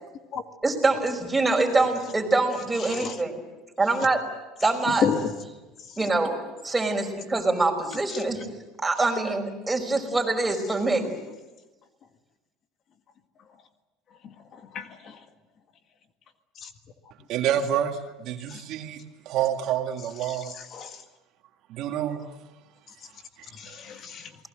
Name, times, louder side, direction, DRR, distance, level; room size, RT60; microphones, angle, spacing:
voice 1, 0.6-3.4 3.8-4.2 4.6-5.1 6.0-6.4 6.6-8.5 8.8-11.1, right 3 dB, 10° right, 5.1 m, -24 dB
voice 2, 2.8-3.1 5.0-5.3 14.7-15.2 16.6-16.7 18.5-18.6 20.3-21.0 23.6-24.3, left 7 dB, 45° left, 1.8 m, -30 dB
voice 3, 17.3-20.5 21.7-22.3 23.7-23.8, right 10 dB, 60° right, 2.1 m, -28 dB
28.5 x 20.0 x 7.9 m
supercardioid pair, 110°, 0 cm